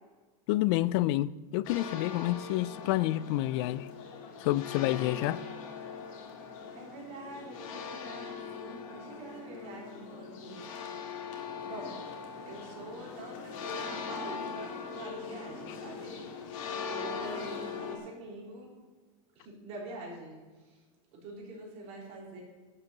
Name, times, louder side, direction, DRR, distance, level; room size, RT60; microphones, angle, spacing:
voice 1, 0.5-3.9 4.4-5.4, left 16 dB, 50° left, 0.4 m, -29 dB
sound 1, 1.6-18.0, left 6 dB, 75° left, 2.6 m, -41 dB
voice 2, 6.8-11.0 11.3-12.0 12.5-18.7 19.4-20.8 21.1-22.4, right 1 dB, 40° right, 4.0 m, -45 dB
11.5 x 6.7 x 7.3 m
supercardioid pair, 165°, 17 cm